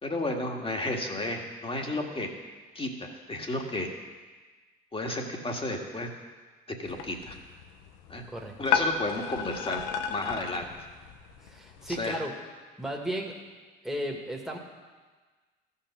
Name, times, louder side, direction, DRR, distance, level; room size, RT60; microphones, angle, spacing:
voice 1, 0.0-2.3 2.8-3.9 4.9-6.1 6.8-7.4 8.1-8.2 8.6-9.8 10.1-10.7 12.0-12.2, left 2 dB, 25° left, 2 dB, 1.9 m, -32 dB
sound 1, 6.9-12.0, left 7 dB, 90° left, 0.8 m, -33 dB
voice 2, 11.4-12.3 12.8-13.4 13.8-14.6, equal, ahead, 0 dB, 1.9 m, -34 dB
14.0 x 5.7 x 6.3 m, 1.4 s
supercardioid pair, 65°, 21 cm